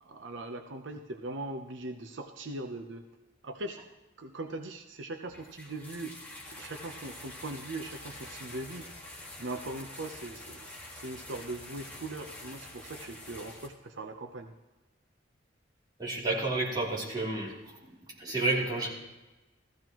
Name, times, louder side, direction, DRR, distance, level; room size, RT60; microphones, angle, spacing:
voice 1, 0.0-3.1 3.4-3.8 4.2-6.2 6.5-8.8 9.4-14.5, right 2 dB, 80° right, 6 dB, 0.8 m, -40 dB
sound 1, 5.3-13.7, left 1 dB, 10° left, 2.1 m, -46 dB
voice 2, 16.0-17.8 18.1-18.9, right 2 dB, 25° right, -6 dB, 3.1 m, -31 dB
15.5 x 14.5 x 3.0 m, 1.1 s
head